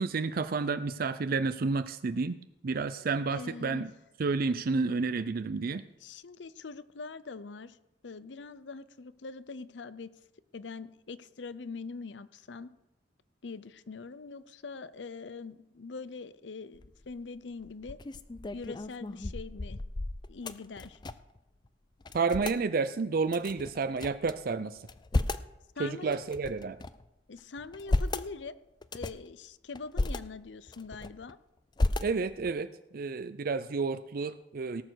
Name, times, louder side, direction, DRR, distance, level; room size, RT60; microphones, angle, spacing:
voice 1, 0.0-2.3 2.6-3.9 4.2-5.8 22.1-24.8 25.8-26.8 32.0-32.7 32.9-34.8, right 4 dB, 55° right, 12 dB, 0.5 m, -30 dB
voice 2, 3.3-3.9 6.0-7.8 8.0-10.1 10.5-12.7 13.4-18.0 18.5-19.8 20.3-21.0 25.8-26.2 27.3-28.6 28.9-31.4, left 4 dB, 80° left, 15 dB, 0.6 m, -43 dB
sound 1, 16.7-17.1 17.6-21.4 21.6-21.7 22.0-22.6 23.3-24.3 24.8-25.5 26.1-27.1 27.6-28.3 28.8-29.3 29.7-30.2 30.7-31.3 31.8-32.5, left 2 dB, 25° left, 0.4 m, -33 dB
18.0 x 6.9 x 6.3 m, 0.94 s
head